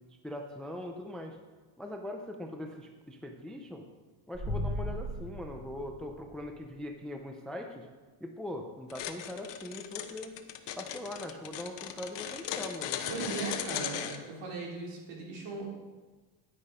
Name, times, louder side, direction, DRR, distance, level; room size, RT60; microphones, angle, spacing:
voice 1, 0.2-1.4 1.8-3.9 4.3-7.9 8.2-10.4 10.8-13.0, left 1 dB, ahead, 4 dB, 0.4 m, -41 dB
sound 1, 4.3-6.6, equal, 20° right, 2.7 m, -37 dB
sound 2, 8.9-14.2, left 10 dB, 55° left, 1.0 m, -37 dB
voice 2, 13.1-15.7, right 4 dB, 60° right, -2 dB, 3.3 m, -38 dB
10.0 x 9.7 x 5.0 m, 1.3 s
cardioid pair, 160°, 50 cm